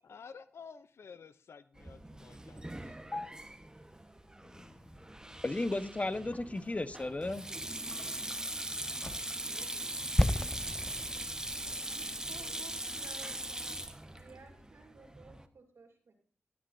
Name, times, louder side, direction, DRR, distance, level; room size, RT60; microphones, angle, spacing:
voice 1, 0.0-2.8 8.3-8.9, left 6 dB, 75° left, 13 dB, 0.5 m, -52 dB
Sink (filling or washing), 1.8-15.5, right 1 dB, 15° right, 1.2 m, -41 dB
sound 1, 3.6-12.2, left 2 dB, 55° left, 1.8 m, -60 dB
voice 2, 4.4-4.8 5.4-7.4, left 2 dB, 30° left, 12 dB, 1.0 m, -35 dB
voice 3, 9.4-10.1 11.5-16.1, right 3 dB, 80° right, 1 dB, 2.8 m, -57 dB
sound 2, 10.2-14.1 14.4-14.5, left 1 dB, 10° left, 0.5 m, -33 dB
18.5 x 9.0 x 2.6 m, 0.43 s
cardioid pair, 50°, 4 cm